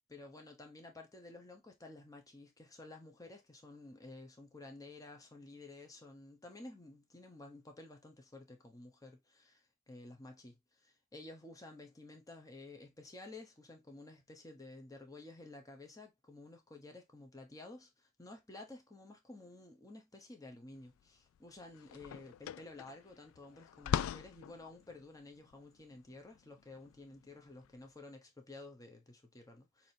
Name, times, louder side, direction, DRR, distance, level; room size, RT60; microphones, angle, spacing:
voice 1, 0.1-29.9, left 2 dB, 15° left, 0.9 m, -53 dB
sound 1, 20.9-21.0 21.4-27.8, left 9 dB, 90° left, 0.3 m, -41 dB
6.1 x 2.8 x 2.7 m
head